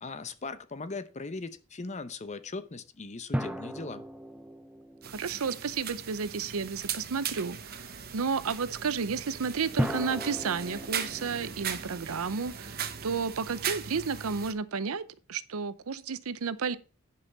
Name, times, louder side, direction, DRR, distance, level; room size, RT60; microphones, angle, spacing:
voice 1, 0.0-4.0, left 3 dB, 30° left, 0.7 m, -39 dB
sound 1, 3.3-6.2 9.8-13.1, equal, 5° right, 0.6 m, -36 dB
sound 2, 5.0-14.5, right 8 dB, 45° right, 0.9 m, -39 dB
voice 2, 5.1-16.8, right 5 dB, 75° right, 0.6 m, -32 dB
10.0 x 5.6 x 5.3 m
head